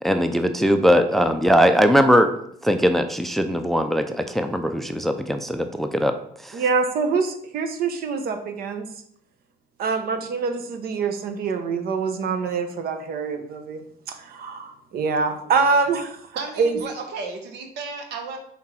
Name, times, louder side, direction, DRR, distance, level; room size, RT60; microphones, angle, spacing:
voice 1, 0.0-2.3 2.6-6.2 6.4-6.6, equal, ahead, 8 dB, 0.4 m, -20 dB
voice 2, 6.5-8.9 9.8-13.8 14.1-16.2 16.6-16.8, right 4 dB, 65° right, 7 dB, 0.9 m, -25 dB
voice 3, 16.4-18.4, right 4 dB, 85° right, 4 dB, 1.1 m, -34 dB
5.8 x 3.7 x 4.4 m, 0.70 s
cardioid pair, 110°, 17 cm